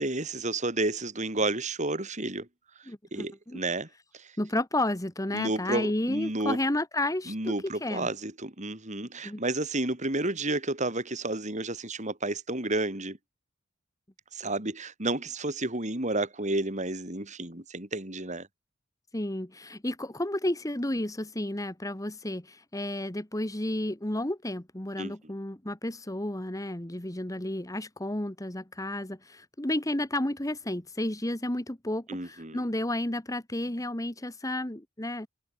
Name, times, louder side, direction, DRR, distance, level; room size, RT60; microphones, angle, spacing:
voice 1, 0.0-2.5 3.1-3.9 4.1-4.3 5.3-6.6 7.3-13.2 14.3-18.5 25.0-25.1 32.1-32.6, right 2 dB, 35° right, 4.4 m, -31 dB
voice 2, 2.9-3.6 4.4-8.1 9.2-9.4 19.1-35.3, left 1 dB, 15° left, 1.6 m, -32 dB
head